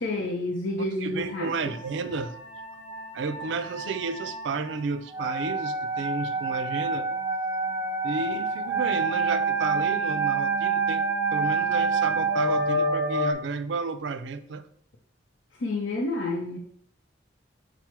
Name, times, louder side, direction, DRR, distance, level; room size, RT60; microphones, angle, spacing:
voice 1, 0.0-1.5 15.6-16.6, left 2 dB, 80° left, 0 dB, 0.6 m, -29 dB
voice 2, 1.0-2.3 3.1-7.1 8.0-11.0 11.3-14.6, right 4 dB, 70° right, 11 dB, 0.4 m, -32 dB
sound 1, 1.3-13.3, right 3 dB, 10° right, 0.5 m, -28 dB
5.8 x 2.0 x 4.5 m, 0.63 s
head